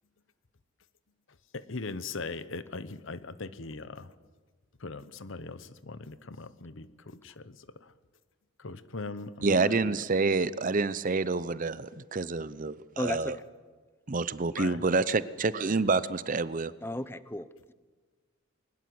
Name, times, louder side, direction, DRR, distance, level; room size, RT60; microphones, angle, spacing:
voice 1, 1.5-4.1 4.8-7.9 8.6-9.9 14.6-14.8, left 3 dB, 60° left, 15 dB, 1.0 m, -40 dB
voice 2, 9.4-13.4 14.1-16.7, right 3 dB, 40° right, 16 dB, 0.6 m, -28 dB
voice 3, 13.0-13.3 16.8-17.7, left 1 dB, 10° left, 14 dB, 0.6 m, -34 dB
21.5 x 20.0 x 7.8 m, 1.4 s
head